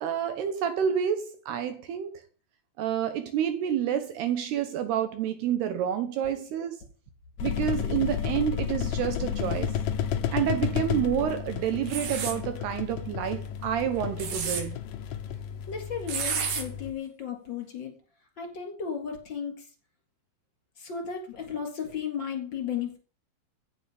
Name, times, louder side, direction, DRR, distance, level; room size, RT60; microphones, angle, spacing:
voice 1, 0.0-2.2 2.8-6.8 7.4-9.8 10.3-14.8, right 9 dB, 70° right, 2.6 m, -29 dB
sound 1, 7.4-16.9, left 9 dB, 80° left, 1.9 m, -32 dB
sound 2, 11.9-12.4 14.0-14.6 16.1-16.6, right 6 dB, 55° right, 3.6 m, -30 dB
voice 2, 15.7-17.9 18.4-19.5 20.8-23.0, left 7 dB, 25° left, 3.5 m, -34 dB
16.0 x 9.2 x 5.2 m
omnidirectional pair, 5.5 m